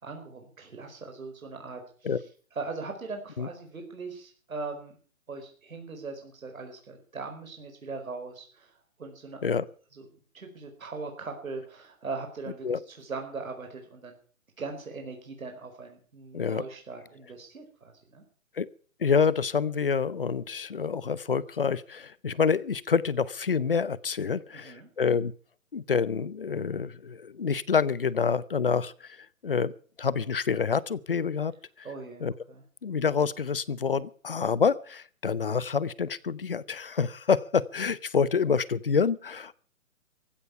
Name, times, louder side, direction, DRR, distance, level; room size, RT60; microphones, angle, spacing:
voice 1, 0.0-2.2 2.5-5.0 5.3-9.4 9.9-10.1 10.3-14.1 14.6-18.2 24.5-24.9 31.8-32.6, right 4 dB, 80° right, 4 dB, 4.9 m, -40 dB
voice 2, 19.0-25.3 25.7-29.2 29.4-29.7 30.0-31.5 32.2-32.3 32.8-39.6, left 6 dB, 45° left, 21 dB, 0.7 m, -27 dB
15.5 x 11.5 x 6.8 m, 0.43 s
hypercardioid pair, 175°, 41 cm